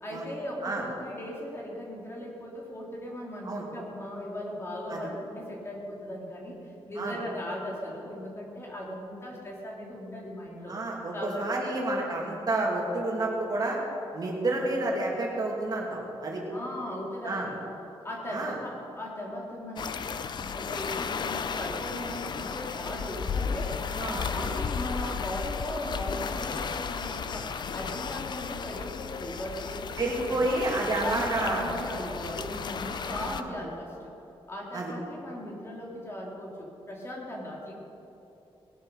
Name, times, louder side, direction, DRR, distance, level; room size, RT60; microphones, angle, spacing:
voice 1, 0.0-10.8 11.1-11.8 15.4-15.5 16.5-17.6 18.0-30.6 31.0-34.2 34.5-37.7, left 1 dB, 25° left, -2 dB, 2.3 m, -38 dB
voice 2, 10.7-13.8 14.1-16.4 17.2-17.5 18.3-18.5 23.9-24.4 30.0-31.6 32.8-33.5 34.7-34.9, right 2 dB, 40° right, -2 dB, 2.5 m, -30 dB
sound 1, 19.8-33.4, left 6 dB, 50° left, 0.5 m, -34 dB
20.0 x 7.8 x 6.5 m, 2.9 s
wide cardioid pair, 175°, 10 cm